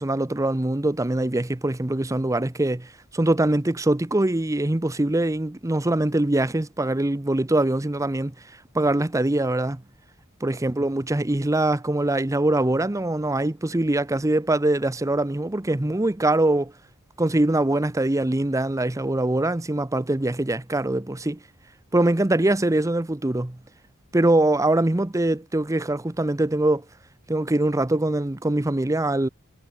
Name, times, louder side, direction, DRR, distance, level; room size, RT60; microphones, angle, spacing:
voice 1, 0.0-8.3 8.7-9.8 10.4-16.7 17.2-21.4 21.9-23.6 24.1-26.8 27.3-29.3, right 1 dB, 15° right, 0.7 m, -23 dB
head